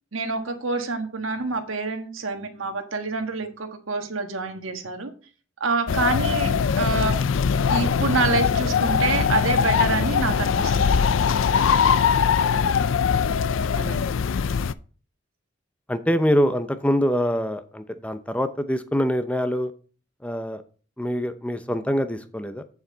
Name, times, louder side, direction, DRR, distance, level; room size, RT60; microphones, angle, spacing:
voice 1, 0.1-5.1 5.6-7.2 7.7-11.1 13.8-14.0, right 3 dB, 85° right, 7 dB, 1.4 m, -27 dB
sound 1, 5.9-14.7, left 6 dB, 75° left, 0.4 m, -21 dB
voice 2, 15.9-19.7 20.2-20.6 21.0-22.6, equal, 5° left, 10 dB, 0.6 m, -24 dB
8.2 x 7.1 x 3.9 m, 0.39 s
head